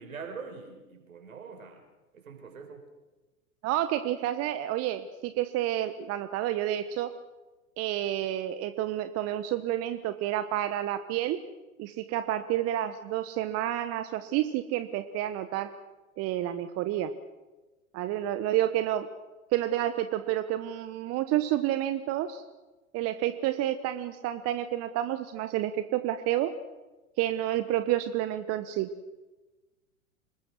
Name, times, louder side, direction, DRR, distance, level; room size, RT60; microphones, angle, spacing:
voice 1, 0.0-1.8 2.1-2.8, right 5 dB, 75° right, 4 dB, 5.5 m, -43 dB
voice 2, 3.6-7.1 7.8-11.4 11.8-15.7 16.2-17.1 17.9-19.1 19.5-22.4 22.9-26.5 27.2-28.9, right 13 dB, 35° right, 11 dB, 1.2 m, -29 dB
25.5 x 21.0 x 6.3 m, 1.2 s
figure-of-eight pair, 95°, 42 cm